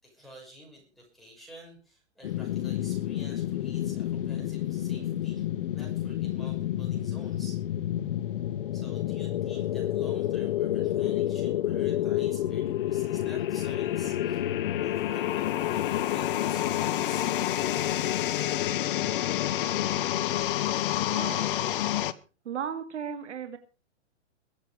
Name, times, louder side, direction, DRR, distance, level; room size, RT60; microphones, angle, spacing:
voice 1, 0.0-5.4 5.7-7.6 8.7-17.3, equal, ahead, -2 dB, 6.1 m, -50 dB
sound 1, 2.2-22.1, left 12 dB, 50° left, 1.0 m, -29 dB
voice 2, 21.1-21.5 22.4-23.6, right 8 dB, 80° right, 9 dB, 2.4 m, -35 dB
22.0 x 8.2 x 5.0 m, 0.35 s
hypercardioid pair, 155°, 35 cm